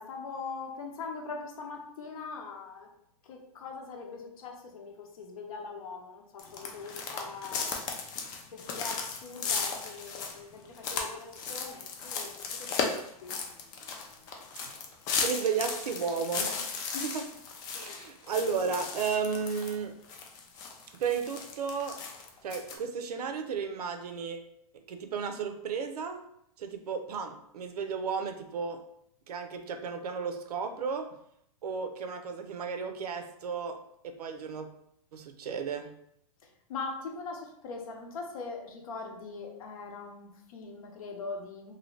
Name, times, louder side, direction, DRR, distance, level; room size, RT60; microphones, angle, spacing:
voice 1, 0.0-2.9 3.2-7.7 8.5-13.3 16.9-17.1 17.8-18.0 36.7-41.7, left 4 dB, 65° left, 2 dB, 0.8 m, -41 dB
sound 1, 6.4-19.7 20.1-22.8, left 5 dB, 20° left, 0.3 m, -36 dB
voice 2, 15.2-17.3 17.7-20.0 21.0-22.0 22.4-24.5 24.7-26.2 26.6-28.8 29.3-31.2 31.6-34.7 35.1-35.9, right 6 dB, 85° right, 6 dB, 0.5 m, -34 dB
2.7 x 2.7 x 3.1 m, 0.74 s
hypercardioid pair, 150°, 19 cm